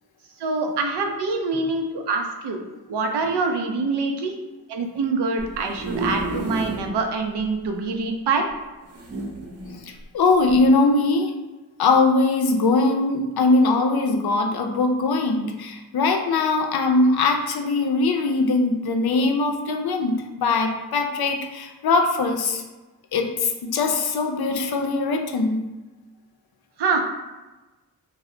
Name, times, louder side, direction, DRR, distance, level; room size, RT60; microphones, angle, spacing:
voice 1, 0.4-2.6 2.9-4.3 4.7-8.5 26.8-27.0, right 4 dB, 85° right, 3 dB, 0.5 m, -25 dB
sound 1, 5.4-6.9 7.4-7.5 7.7-7.8 8.9-9.8 10.5-10.7, right 1 dB, 35° right, 0.6 m, -31 dB
voice 2, 10.1-11.3 11.8-22.6 23.1-25.6, left 3 dB, 65° left, 3 dB, 0.5 m, -21 dB
2.1 x 2.0 x 3.7 m, 1.1 s
cardioid pair, 55°, 40 cm